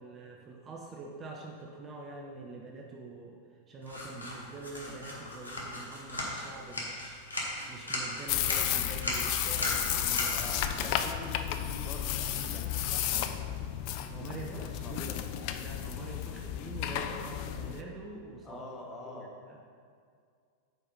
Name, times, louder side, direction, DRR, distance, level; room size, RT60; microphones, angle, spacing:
voice 1, 0.0-3.4 3.7-7.2 7.7-10.4 13.1-13.3 14.1-15.1 15.6-18.6 19.0-19.6, right 3 dB, 25° right, 0 dB, 0.7 m, -45 dB
sound 1, 3.8-12.9, left 1 dB, 75° left, 1.2 m, -39 dB
sound 2, 8.3-17.8, left 11 dB, 45° left, 0.3 m, -33 dB
voice 2, 10.2-13.6 14.5-15.2 18.4-19.3, left 2 dB, 20° left, -1 dB, 1.1 m, -45 dB
4.9 x 4.3 x 5.3 m, 2.2 s
figure-of-eight pair, 90°, 0 cm